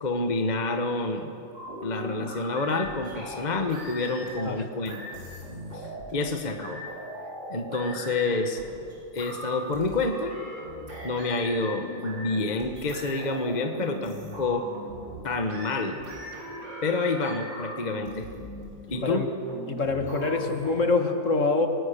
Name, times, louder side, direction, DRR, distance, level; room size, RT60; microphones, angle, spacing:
voice 1, 0.0-1.3 1.8-5.0 5.7-5.8 6.1-6.8 7.5-8.6 9.1-10.3 11.0-14.6 15.2-16.0 16.8-18.3 18.9-19.3, left 3 dB, 25° left, 5 dB, 1.2 m, -28 dB
sound 1, 1.5-4.5 4.8-6.3 6.6-20.7, equal, 70° right, 5.6 m, -39 dB
voice 2, 18.9-19.3 19.7-21.7, left 3 dB, 45° left, 5 dB, 1.6 m, -25 dB
28.5 x 18.0 x 6.8 m, 2.7 s
omnidirectional pair, 2.1 m